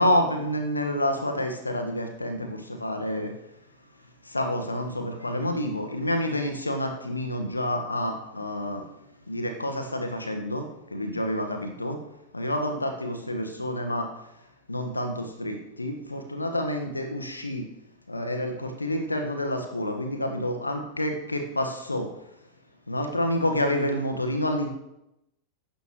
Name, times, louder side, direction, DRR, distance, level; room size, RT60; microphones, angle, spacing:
voice 1, 0.0-3.3 4.3-8.8 9.3-12.0 12.3-14.1 14.7-17.6 18.1-22.1 22.9-24.7, left 1 dB, 80° left, 5 dB, 1.4 m, -28 dB
15.0 x 11.5 x 3.1 m, 0.86 s
figure-of-eight pair, 90°, 0 cm